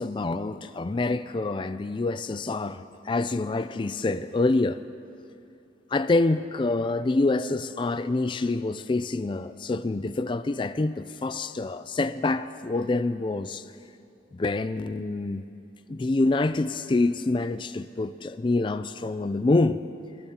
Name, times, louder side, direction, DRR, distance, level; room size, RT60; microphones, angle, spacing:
voice 1, 0.0-4.8 5.9-13.6 14.3-15.4 15.9-19.8, left 2 dB, 25° left, 0.3 m, -26 dB
24.0 x 14.0 x 2.9 m
head